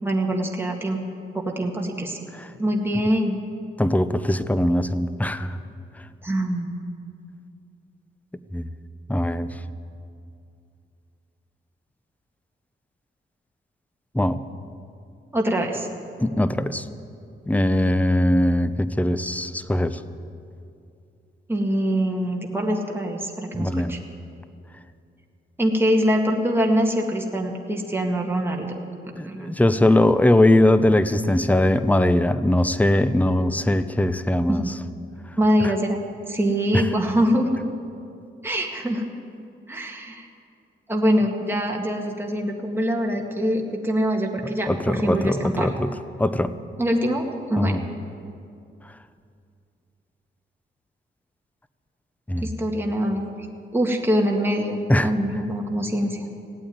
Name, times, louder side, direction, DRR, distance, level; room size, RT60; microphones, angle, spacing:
voice 1, 0.0-1.0 1.3-2.3 2.6-3.4 6.2-6.7 15.3-15.9 21.5-24.0 25.6-28.8 29.2-29.6 34.5-34.7 35.4-37.5 38.4-39.1 39.7-40.3 40.9-45.7 46.8-47.9 52.4-53.3 53.7-56.3, equal, 10° right, 0 dB, 1.9 m, -24 dB
voice 2, 3.8-5.6 8.5-8.7 9.1-9.5 14.1-14.4 16.2-16.8 17.5-20.0 23.5-24.0 29.1-34.7 35.6-35.7 36.7-36.8 44.7-45.9 46.2-46.5 47.6-47.8 52.3-52.5 54.9-55.1, left 1 dB, 5° left, 13 dB, 0.7 m, -21 dB
17.0 x 8.8 x 9.4 m, 2.5 s
cardioid pair, 70°, 20 cm